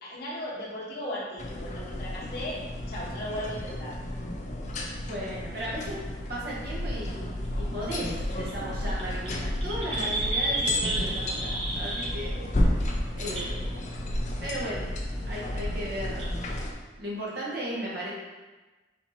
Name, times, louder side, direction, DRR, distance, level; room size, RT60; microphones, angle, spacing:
voice 1, 0.0-2.6 2.9-4.0, left 1 dB, 55° left, -6 dB, 1.2 m, -36 dB
sound 1, 1.4-16.7, left 1 dB, 40° left, 0.5 m, -32 dB
sound 2, 2.8-4.5 5.4-5.5 5.8-6.0 7.1-7.5 7.8-7.9 8.1-8.2 8.3-12.5 12.8-12.9 13.2-13.6 14.2-14.5 14.9-15.0 15.3-15.4 15.6-15.7 16.2-16.3, right 2 dB, 30° right, 0.8 m, -32 dB
voice 2, 5.1-12.9 13.2-13.9 14.4-14.9 15.2-16.5 17.0-18.1, right 1 dB, 55° right, -6 dB, 1.3 m, -36 dB
4.3 x 2.8 x 4.2 m, 1.2 s
head